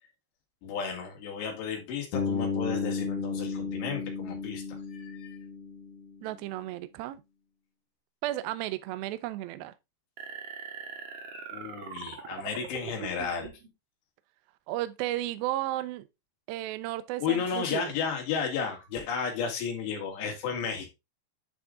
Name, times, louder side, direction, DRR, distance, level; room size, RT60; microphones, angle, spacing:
voice 1, 0.6-4.6 4.9-5.4 11.3-13.5 17.2-20.9, left 6 dB, 85° left, 4.2 m, -33 dB
Bass guitar, 2.1-6.2, left 4 dB, 70° left, 3.1 m, -33 dB
voice 2, 6.2-7.2 8.2-9.7 14.7-16.1 16.5-17.9, right 15 dB, 80° right, 2.3 m, -33 dB
sound 1, 10.2-13.7, right 6 dB, 65° right, 1.5 m, -42 dB
10.5 x 3.8 x 3.6 m
omnidirectional pair, 4.8 m